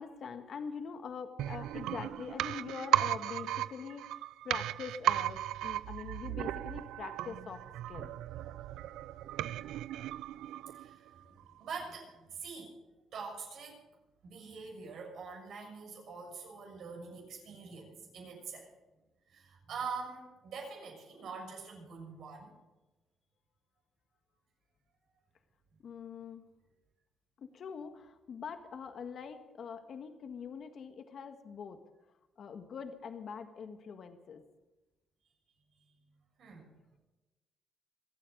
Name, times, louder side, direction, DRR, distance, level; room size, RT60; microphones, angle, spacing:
voice 1, 0.0-7.6 7.9-8.1 25.8-26.4 27.4-31.8 32.4-34.4, left 6 dB, 60° left, 8 dB, 1.7 m, -44 dB
sound 1, 1.4-11.1 11.4-11.5, right 13 dB, 90° right, 0.4 m, -35 dB
voice 2, 10.2-12.7 13.1-13.8 14.2-18.7 19.3-22.5 35.8-35.9 36.4-36.7, right 5 dB, 70° right, 0 dB, 6.6 m, -45 dB
26.0 x 8.8 x 5.2 m, 1.1 s
cardioid pair, 90°, 0 cm